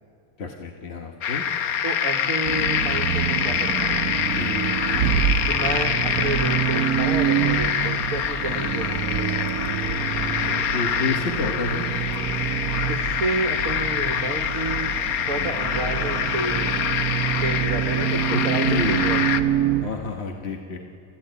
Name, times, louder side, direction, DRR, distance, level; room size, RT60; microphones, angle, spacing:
voice 1, 0.4-1.4 4.4-4.7 10.4-11.9 15.4-15.5 18.3-18.4 18.7-19.2 19.8-20.8, left 3 dB, 50° left, 2 dB, 1.4 m, -30 dB
sound 1, 1.2-19.4, left 8 dB, 80° left, 1.3 m, -26 dB
voice 2, 1.8-4.0 5.5-9.5 12.9-14.9 15.3-16.7 17.4-19.5, right 2 dB, 65° right, 4 dB, 1.8 m, -30 dB
Accelerating revving vroom, 2.4-19.9, right 9 dB, 90° right, 1.2 m, -26 dB
30.0 x 14.0 x 9.4 m, 2.6 s
omnidirectional pair, 1.5 m